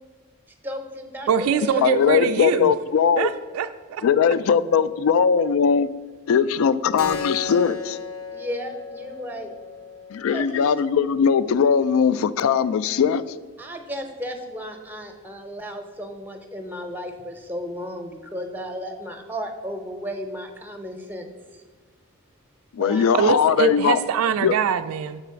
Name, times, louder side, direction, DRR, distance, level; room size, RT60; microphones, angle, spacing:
voice 1, 0.6-2.0 8.3-9.5 10.3-10.7 13.6-21.3 21.5-21.6 22.8-23.0, equal, 10° right, 5 dB, 0.7 m, -34 dB
voice 2, 1.3-2.7 3.2-4.0 23.1-25.2, right 7 dB, 75° right, 10 dB, 0.3 m, -23 dB
voice 3, 1.8-3.3 4.0-5.9 6.3-8.0 10.1-13.2 22.7-24.0 24.4-24.5, left 7 dB, 70° left, 16 dB, 0.3 m, -20 dB
Keyboard (musical), 7.0-12.1, left 4 dB, 90° left, 0.7 m, -36 dB
6.8 x 4.1 x 5.7 m, 1.4 s
head